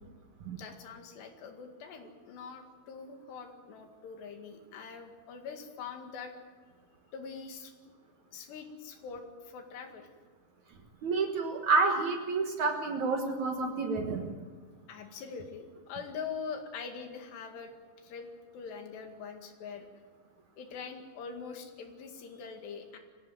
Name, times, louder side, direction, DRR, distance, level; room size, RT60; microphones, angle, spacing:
voice 1, 0.6-6.3 7.1-7.7 8.3-10.1 14.9-18.3 18.5-19.9 20.6-23.0, left 5 dB, 80° left, 4 dB, 4.2 m, -43 dB
voice 2, 11.0-14.3, right 3 dB, 55° right, 3 dB, 2.3 m, -29 dB
23.0 x 16.0 x 9.2 m, 1.5 s
omnidirectional pair, 4.8 m